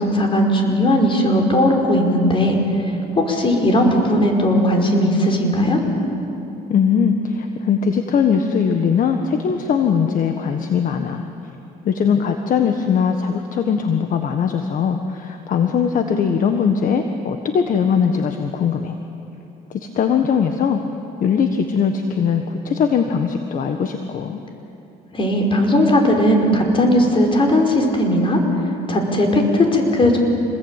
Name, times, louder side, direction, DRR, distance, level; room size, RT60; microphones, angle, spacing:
voice 1, 0.0-2.6 3.2-5.8 25.1-30.2, left 1 dB, 30° left, 2 dB, 5.2 m, -17 dB
voice 2, 6.7-11.2 11.8-18.9 19.7-20.8 21.2-24.4, left 6 dB, 50° left, 6 dB, 1.5 m, -20 dB
27.5 x 21.0 x 9.1 m, 2.9 s
cardioid pair, 110°, 17 cm